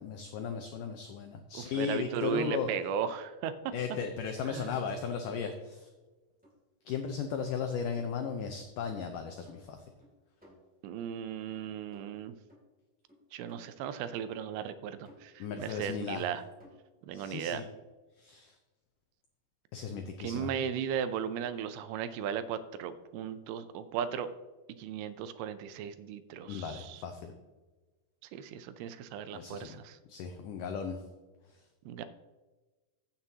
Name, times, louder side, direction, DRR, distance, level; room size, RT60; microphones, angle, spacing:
voice 1, 0.0-2.7 3.7-5.9 6.9-9.9 15.4-16.3 17.1-17.7 18.2-18.6 19.7-20.5 26.4-27.3 29.3-29.8 30.1-31.0 31.5-31.6, left 6 dB, 90° left, 5 dB, 1.8 m, -36 dB
voice 2, 1.5-3.7 4.5-4.7 10.8-12.4 13.3-16.4 17.1-17.6 20.2-24.3 24.8-27.0 28.3-30.0 31.9-32.0, right 8 dB, 80° right, 12 dB, 2.4 m, -36 dB
sound 1, 6.4-6.5 7.0-7.1 7.4-8.2 8.5-8.6 8.9-10.1 10.4-11.1 11.5-11.7 11.9-12.2 12.5-12.6 13.1-13.7 14.1-14.2 14.6-14.7 15.0-15.3 15.6-15.8 16.2-16.3 16.6-16.9, left 1 dB, 5° right, 1.3 m, -58 dB
15.0 x 7.4 x 2.8 m, 1.2 s
omnidirectional pair, 4.7 m